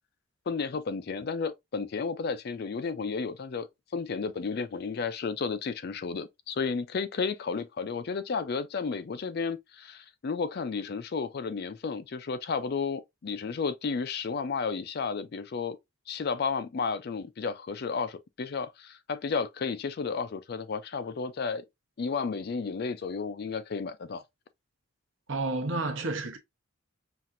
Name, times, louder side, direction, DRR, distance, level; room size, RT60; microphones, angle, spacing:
voice 1, 0.5-3.7 3.9-15.8 16.1-21.6 22.0-24.2, left 5 dB, 45° left, 0.4 m, -32 dB
voice 2, 25.3-26.4, right 2 dB, 60° right, 0.9 m, -30 dB
5.8 x 2.5 x 2.5 m
head